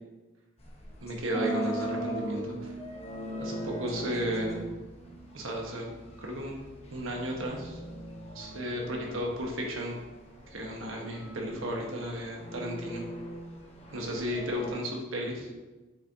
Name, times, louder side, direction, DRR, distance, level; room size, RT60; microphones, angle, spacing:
sound 1, 0.6-14.7, left 1 dB, 30° left, 1.0 m, -42 dB
voice 1, 1.0-2.7 3.4-4.7 5.3-5.9 6.2-6.6 6.9-7.8 8.3-10.0 10.5-13.0 13.9-15.5, equal, 80° right, 0 dB, 1.3 m, -34 dB
Harp, 1.3-5.4 5.7-6.3 6.8-7.1, right 4 dB, 5° right, 0.4 m, -40 dB
7.4 x 5.5 x 2.8 m, 1.2 s
head